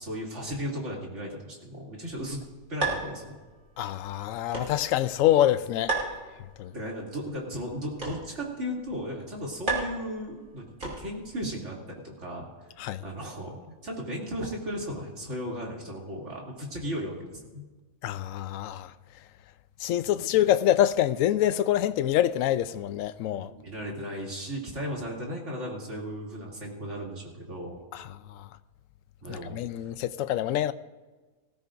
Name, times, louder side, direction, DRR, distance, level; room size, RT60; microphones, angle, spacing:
voice 1, 0.0-2.4 2.7-3.4 6.7-12.5 13.0-17.6 20.0-20.4 23.4-27.8 29.2-29.6, equal, 55° right, 3.2 m, -36 dB
sound 1, 2.1-11.4, right 3 dB, 75° right, 3.4 m, -37 dB
voice 2, 3.8-6.0 6.6-6.7 12.8-13.0 18.0-18.9 19.8-23.5 27.9-28.5 29.3-30.7, left 12 dB, 75° left, 1.0 m, -26 dB
19.0 x 16.0 x 2.6 m
omnidirectional pair, 1.5 m